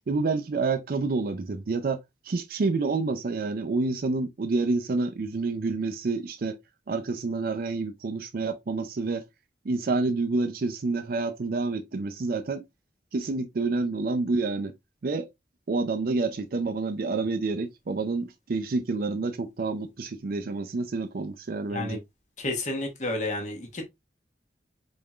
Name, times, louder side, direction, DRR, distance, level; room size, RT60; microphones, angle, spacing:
voice 1, 0.1-2.0 2.2-6.6 6.9-9.2 9.7-12.6 13.1-14.7 15.0-15.3 15.7-22.0, right 3 dB, 55° right, 0.4 m, -28 dB
voice 2, 22.4-23.9, left 2 dB, 45° left, 1.1 m, -31 dB
4.3 x 3.5 x 2.3 m
head